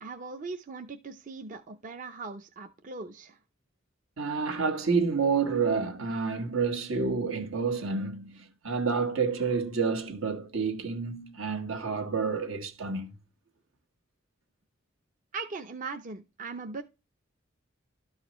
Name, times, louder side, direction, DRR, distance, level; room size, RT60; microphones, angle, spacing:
voice 1, 0.0-3.4 15.3-16.8, right 4 dB, 40° right, 0.5 m, -39 dB
voice 2, 4.2-13.2, right 5 dB, 85° right, 1.4 m, -29 dB
12.5 x 4.9 x 3.0 m
head